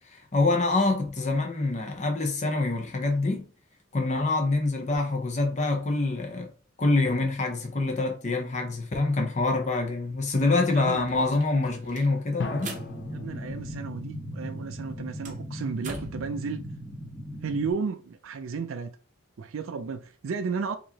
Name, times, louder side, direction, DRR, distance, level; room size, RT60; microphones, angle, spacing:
voice 1, 0.1-3.5 3.9-6.5 6.8-12.8, left 3 dB, 35° left, 0.8 m, -26 dB
sound 1, 9.8-9.9 10.2-14.1 14.4-16.3, right 4 dB, 40° right, 0.7 m, -45 dB
sound 2, 12.4-15.1, left 4 dB, 55° left, 0.4 m, -39 dB
sound 3, 12.4-17.7, equal, 15° left, 1.1 m, -38 dB
voice 2, 13.1-16.6 17.4-19.0 19.4-20.8, right 5 dB, 80° right, 0.4 m, -33 dB
4.6 x 2.9 x 2.8 m
head